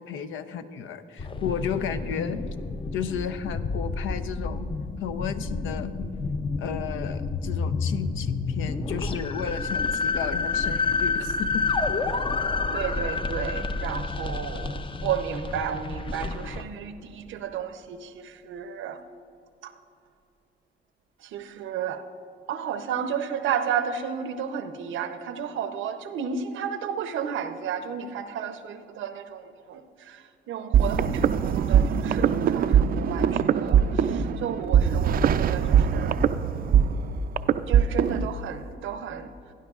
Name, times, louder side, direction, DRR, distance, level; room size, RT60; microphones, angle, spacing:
voice 1, 0.0-2.4 2.9-4.6 5.0-5.9 6.6-11.6, left 8 dB, 80° left, 9 dB, 0.6 m, -33 dB
sound 1, 1.2-16.6, left 4 dB, 25° left, 0.5 m, -29 dB
voice 2, 12.7-19.0 19.6-19.7 21.3-22.0 22.5-29.8 30.1-30.2 30.5-36.2 37.7-39.3, right 8 dB, 80° right, 10 dB, 0.7 m, -32 dB
sound 2, 30.7-38.3, right 8 dB, 50° right, 0.4 m, -21 dB
17.0 x 10.0 x 2.4 m, 2.6 s
cardioid pair, 90°, 20 cm